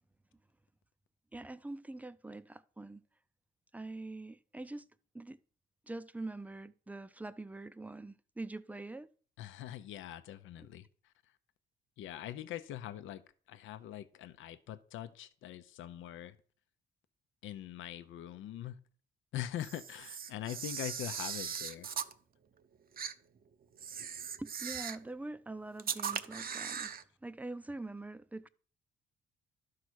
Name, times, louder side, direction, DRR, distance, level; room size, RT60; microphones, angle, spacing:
voice 1, 1.3-3.0 3.7-4.9 5.1-5.4 5.9-9.1 10.6-10.7 24.4-28.5, right 2 dB, 5° right, 0.5 m, -44 dB
voice 2, 9.4-11.1 12.0-13.2 13.5-16.4 17.4-18.8 19.3-21.9, left 12 dB, 80° left, 0.7 m, -43 dB
Camera, 19.6-22.1 23.0-23.1 23.8-25.1 25.8-27.0, right 7 dB, 50° right, 0.7 m, -39 dB
11.5 x 4.8 x 6.3 m
cardioid pair, 90°, 20 cm